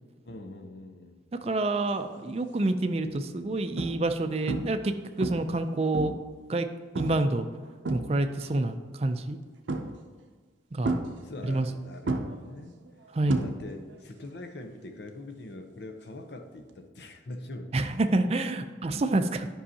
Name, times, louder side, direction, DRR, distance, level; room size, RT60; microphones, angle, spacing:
voice 1, 0.2-1.3 11.2-12.8 13.4-17.8, left 2 dB, 65° left, 6 dB, 0.7 m, -43 dB
voice 2, 1.4-6.1 6.5-6.7 6.9-7.5 7.9-9.4 10.7-11.0 11.4-11.7 13.1-13.4 17.7-19.5, right 2 dB, 35° right, 8 dB, 0.4 m, -28 dB
sound 1, 2.1-2.5 3.0-3.2 3.8-4.2 4.5-4.9 5.2-6.3 7.0-7.3 7.6-8.5 9.7-10.2 10.8-11.7 12.1-14.0 14.2-14.6 16.7-16.8, right 2 dB, 85° right, 0.6 m, -32 dB
10.0 x 5.5 x 2.8 m, 1.5 s
head